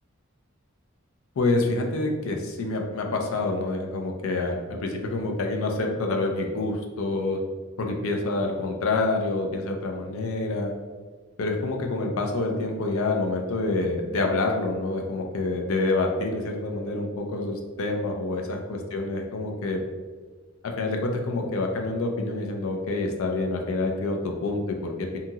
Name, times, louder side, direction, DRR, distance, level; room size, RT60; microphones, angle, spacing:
voice 1, 1.4-7.4 7.8-10.7 11.4-19.8 20.6-25.2, left 2 dB, 80° left, 2 dB, 0.4 m, -27 dB
2.8 x 2.7 x 2.4 m, 1.4 s
head